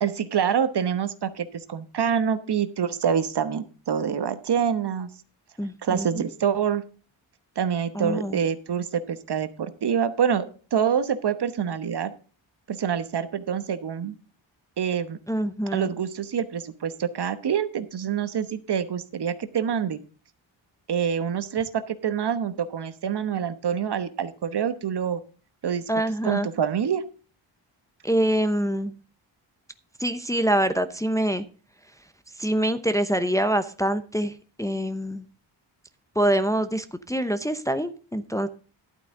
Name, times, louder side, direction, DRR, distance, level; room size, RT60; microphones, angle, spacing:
voice 1, 0.0-5.1 5.8-6.8 7.6-10.4 10.7-12.1 12.7-14.1 14.8-15.2 15.7-20.0 20.9-25.2 25.6-25.8 26.2-27.0, right 8 dB, 55° right, 12 dB, 1.1 m, -26 dB
voice 2, 5.6-6.2 7.9-8.4 15.3-15.9 25.9-26.5 28.0-28.9 30.0-31.4 32.4-35.2 36.2-38.5, right 1 dB, 5° left, 9 dB, 0.7 m, -25 dB
11.5 x 8.7 x 3.8 m, 0.38 s
cardioid pair, 100°, 48 cm